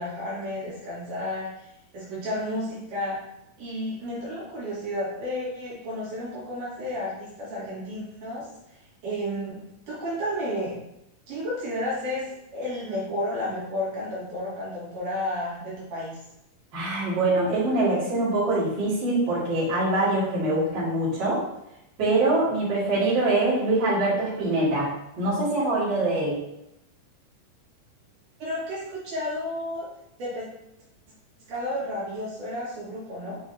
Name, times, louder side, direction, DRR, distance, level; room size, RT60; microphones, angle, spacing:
voice 1, 0.0-1.7 1.9-3.2 3.6-8.5 9.0-9.6 9.9-10.7 11.3-12.2 12.5-16.2 28.4-29.9 30.2-30.5 31.5-33.4, left 1 dB, 65° right, -8 dB, 3.4 m, -32 dB
voice 2, 16.7-21.4 22.0-26.4, right 2 dB, 35° right, -9 dB, 2.5 m, -24 dB
7.8 x 4.5 x 2.8 m, 0.82 s
omnidirectional pair, 4.1 m